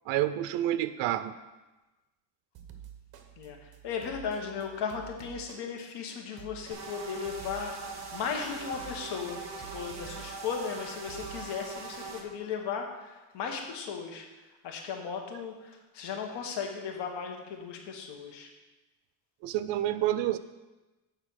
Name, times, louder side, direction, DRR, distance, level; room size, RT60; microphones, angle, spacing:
voice 1, 0.1-1.3 19.4-20.4, right 13 dB, 80° right, 12 dB, 0.6 m, -28 dB
sound 1, 2.5-11.7, right 9 dB, 60° right, 1.0 m, -50 dB
voice 2, 3.4-7.7 8.1-9.4 9.7-14.2 14.6-18.5, left 6 dB, 75° left, 3 dB, 1.5 m, -36 dB
sound 2, 6.7-12.2, right 4 dB, 40° right, 1.4 m, -41 dB
8.4 x 4.4 x 6.3 m, 1.1 s
cardioid pair, 145°, 42 cm